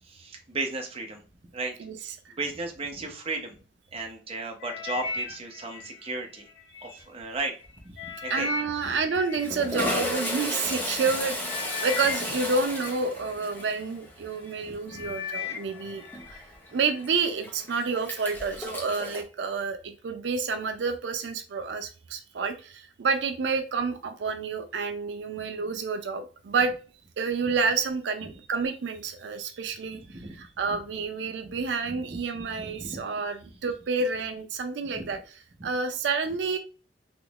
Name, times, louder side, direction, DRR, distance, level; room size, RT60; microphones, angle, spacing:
voice 1, 0.1-1.2 1.5-3.6 3.9-6.5 6.8-7.5 8.2-8.5 8.8-8.9 14.6-15.1 25.4-25.5 29.9-30.4 30.7-30.8 31.4-31.6 31.9-32.2 32.6-33.0 34.9-35.2, right 2 dB, 35° right, 3 dB, 0.7 m, -35 dB
voice 2, 1.8-2.3 8.0-16.4 16.7-26.7 27.2-30.0 30.4-35.2 35.6-36.6, right 4 dB, 90° right, 7 dB, 0.4 m, -29 dB
sound 1, 4.6-6.9 7.5-10.3 11.0-11.1 11.4-13.8 14.3-14.6 14.9-16.4 16.8-17.2 17.8-17.9, left 6 dB, 75° left, 0.8 m, -37 dB
Toilet flush, 7.0-7.4 7.6-7.8 8.8-19.2, left 1 dB, 10° left, 0.8 m, -34 dB
3.6 x 3.0 x 2.3 m, 0.36 s
head